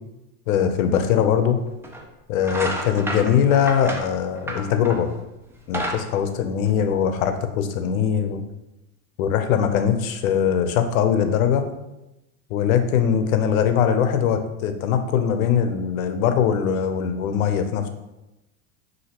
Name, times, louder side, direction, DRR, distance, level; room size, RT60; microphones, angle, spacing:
voice 1, 0.5-1.6 2.3-5.1 5.7-8.4 9.2-11.6 12.5-17.9, left 8 dB, 70° left, 8 dB, 0.7 m, -21 dB
sound 1, 1.8-2.0 2.4-5.1 5.5-7.2, right 1 dB, 5° right, 0.4 m, -30 dB
5.6 x 2.8 x 2.9 m, 0.95 s
hypercardioid pair, 100°, 44 cm